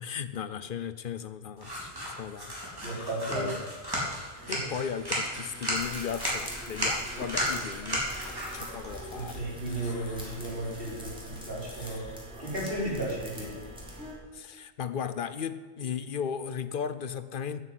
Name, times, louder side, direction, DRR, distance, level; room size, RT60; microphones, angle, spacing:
voice 1, 0.0-3.6 4.5-8.0 8.5-9.4 9.7-10.2 11.7-12.5 12.9-13.0 14.3-17.6, left 7 dB, 60° left, 13 dB, 0.8 m, -36 dB
sound 1, 1.6-10.7, equal, 20° right, 3.8 m, -35 dB
voice 2, 2.8-3.5 4.3-4.6 9.1-12.1 12.4-13.6, right 1 dB, 65° right, -4 dB, 4.4 m, -34 dB
sound 2, 4.4-14.1, right 2 dB, 80° right, 2.0 m, -50 dB
sound 3, 5.7-14.1, equal, 5° right, 3.2 m, -44 dB
9.8 x 9.8 x 8.0 m, 1.4 s
omnidirectional pair, 1.1 m